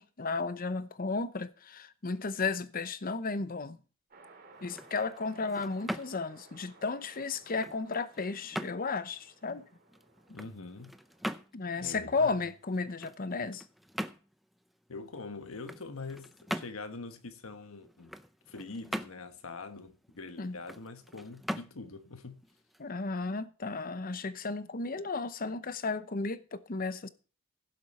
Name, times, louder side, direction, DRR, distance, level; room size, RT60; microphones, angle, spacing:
voice 1, 0.0-3.8 4.6-9.6 11.5-13.6 20.4-20.6 22.8-27.1, left 4 dB, 45° left, 0.8 m, -34 dB
sound 1, 4.1-11.5, right 3 dB, 45° right, 2.9 m, -58 dB
sound 2, 4.5-23.4, equal, ahead, 0.6 m, -43 dB
voice 2, 10.3-10.9 11.8-12.4 13.4-13.5 14.9-18.1 18.5-22.4, left 3 dB, 90° left, 1.3 m, -44 dB
16.5 x 7.5 x 4.3 m
head